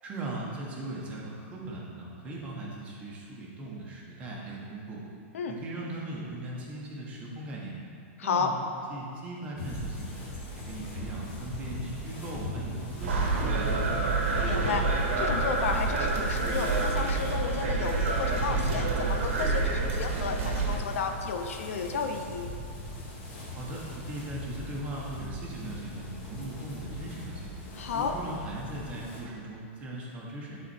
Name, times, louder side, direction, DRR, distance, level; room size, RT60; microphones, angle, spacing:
voice 1, 0.0-5.0 5.5-7.8 8.2-8.6 8.9-10.2 10.5-14.0 23.6-27.5 27.9-30.6, right 2 dB, 15° right, -4 dB, 1.3 m, -39 dB
voice 2, 8.2-8.5 14.5-14.9 15.2-22.5 27.8-28.1, left 5 dB, 85° left, 5 dB, 0.7 m, -32 dB
sound 1, 9.5-29.2, left 1 dB, 35° left, 2.1 m, -39 dB
sound 2, 13.0-20.8, right 3 dB, 70° right, 1.4 m, -28 dB
12.0 x 4.2 x 4.4 m, 2.4 s
supercardioid pair, 170°, 7 cm